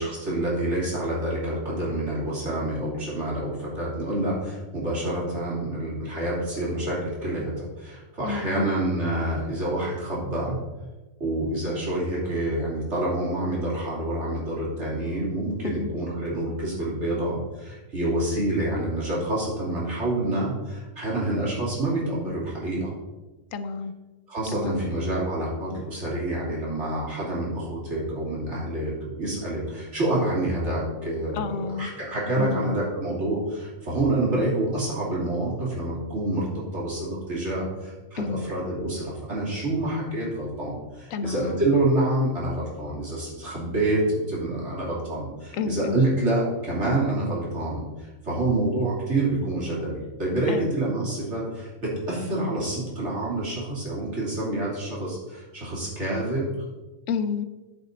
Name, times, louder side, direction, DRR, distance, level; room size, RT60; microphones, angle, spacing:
voice 1, 0.0-10.6 11.2-22.9 24.3-56.5, right 1 dB, 55° right, -5 dB, 3.3 m, -27 dB
voice 2, 8.2-8.7 15.6-15.9 23.5-23.9 24.5-24.9 31.3-31.9 32.4-32.8 38.2-38.5 41.1-41.6 45.5-46.1 50.5-50.7 57.1-57.4, left 5 dB, 75° left, 11 dB, 1.1 m, -30 dB
9.8 x 7.2 x 4.1 m, 1.1 s
omnidirectional pair, 1.4 m